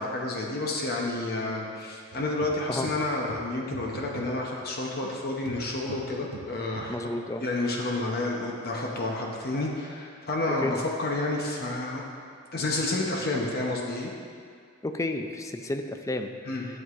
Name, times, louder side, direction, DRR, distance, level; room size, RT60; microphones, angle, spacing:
voice 1, 0.0-7.0 7.4-12.0 12.5-14.1 16.4-16.6, left 2 dB, 50° left, -1 dB, 0.8 m, -30 dB
sound 1, 2.1-5.2 5.5-7.1, right 4 dB, 90° right, 0.5 m, -44 dB
voice 2, 6.9-7.4 10.6-10.7 14.8-16.7, left 2 dB, 15° left, 6 dB, 0.3 m, -31 dB
11.0 x 7.5 x 2.5 m, 2.2 s
head